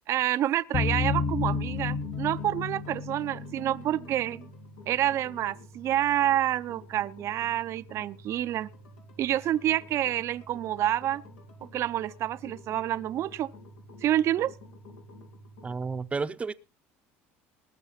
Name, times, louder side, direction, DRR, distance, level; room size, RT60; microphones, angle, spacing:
voice 1, 0.1-4.5 4.9-8.7 9.2-11.2 11.7-13.5 14.0-14.5, right 12 dB, 55° right, 0.6 m, -28 dB
sound 1, 0.7-16.1, equal, 85° left, 4.4 m, -50 dB
sound 2, 0.7-4.5, left 5 dB, 40° left, 1.4 m, -31 dB
voice 2, 15.6-16.5, right 4 dB, 20° right, 0.8 m, -31 dB
19.5 x 6.8 x 5.8 m
supercardioid pair, 100°, 6 cm